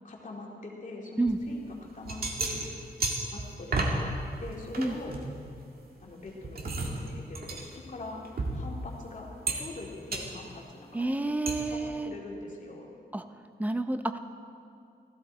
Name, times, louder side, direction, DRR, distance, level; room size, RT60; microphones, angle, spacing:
voice 1, 0.0-2.6 3.3-4.1 4.4-5.2 6.0-8.2 8.5-12.9, left 2 dB, 50° left, -2 dB, 2.4 m, -43 dB
sound 1, 1.3-1.4 1.9-4.0 4.3-5.9 6.3-9.0 9.5-9.8 10.1-10.3 11.5-11.6, right 3 dB, 65° right, 1.9 m, -33 dB
voice 2, 10.9-12.1 13.1-13.2 13.6-14.2, right 2 dB, 10° right, 9 dB, 0.6 m, -29 dB
15.5 x 14.5 x 4.4 m, 2.4 s
wide cardioid pair, 120°, 17 cm